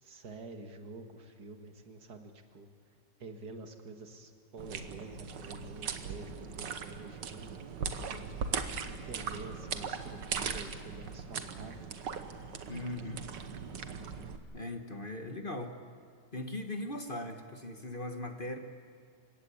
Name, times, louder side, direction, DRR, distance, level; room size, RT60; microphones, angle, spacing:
voice 1, 0.0-2.7 3.2-8.3 8.9-11.9, right 3 dB, 70° right, 5 dB, 2.2 m, -48 dB
sound 1, 4.6-14.4, right 6 dB, 85° right, 1.9 m, -39 dB
voice 2, 12.7-13.2 14.5-15.7 16.3-18.6, left 1 dB, 35° left, 5 dB, 1.4 m, -39 dB
28.0 x 17.0 x 8.5 m, 2.4 s
omnidirectional pair, 1.9 m